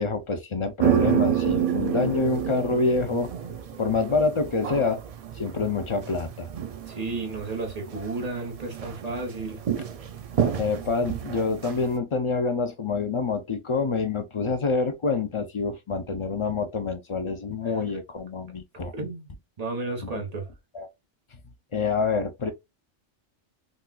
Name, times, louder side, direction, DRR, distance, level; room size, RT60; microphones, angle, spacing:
voice 1, 0.0-3.3 3.8-5.0 5.4-6.5 10.6-18.9 20.0-20.2 20.7-20.9 21.7-22.5, left 4 dB, 45° left, 0.4 m, -26 dB
sound 1, 0.8-12.0, right 9 dB, 75° right, 0.3 m, -29 dB
voice 2, 6.8-9.6 17.6-17.8 18.9-20.5, right 3 dB, 35° right, 1.0 m, -33 dB
4.0 x 2.3 x 2.2 m
omnidirectional pair, 1.2 m